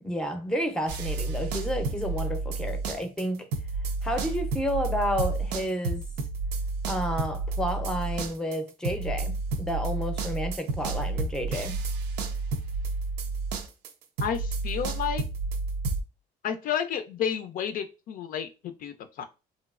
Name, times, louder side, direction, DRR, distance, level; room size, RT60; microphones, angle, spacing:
voice 1, 0.0-3.5 4.0-6.0 6.8-11.8, equal, 5° left, 0.5 m, -31 dB
sound 1, 0.9-3.2 3.5-16.0, right 3 dB, 90° right, 0.5 m, -31 dB
voice 2, 14.2-15.2 16.4-19.2, left 8 dB, 55° left, 0.4 m, -31 dB
3.0 x 2.7 x 2.4 m
cardioid pair, 110°, 17 cm